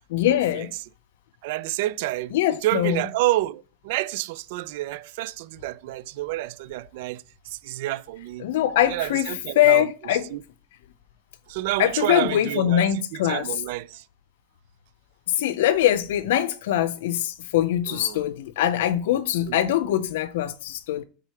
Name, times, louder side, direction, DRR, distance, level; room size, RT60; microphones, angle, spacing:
voice 1, 0.1-0.7 2.3-3.0 8.4-10.3 11.8-13.5 15.3-21.0, left 12 dB, 80° left, 0.6 m, -23 dB
voice 2, 1.4-2.3 2.6-8.5 8.9-9.9 10.3-10.4 11.5-14.0 17.9-18.2 19.5-19.7, right 16 dB, 65° right, 0.3 m, -29 dB
4.8 x 3.7 x 5.6 m
supercardioid pair, 165°, 0 cm